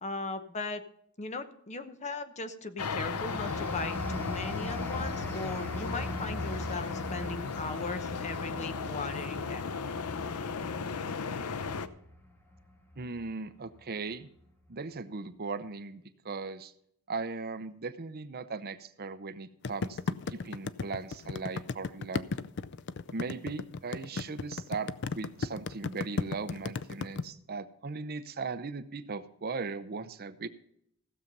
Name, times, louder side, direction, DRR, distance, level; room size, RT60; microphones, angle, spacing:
voice 1, 0.0-0.8 1.2-9.6, left 3 dB, 30° left, 9 dB, 1.0 m, -38 dB
sound 1, 2.8-11.9, left 5 dB, 90° left, 0.7 m, -36 dB
sound 2, 3.0-13.3 13.8-14.0, left 1 dB, 10° left, 1.3 m, -41 dB
voice 2, 13.0-14.3 14.7-16.7 17.1-22.3 23.1-30.5, right 4 dB, 45° right, 12 dB, 0.7 m, -38 dB
sound 3, 19.6-27.2, left 4 dB, 50° left, 0.5 m, -34 dB
15.5 x 7.2 x 5.4 m, 0.71 s
head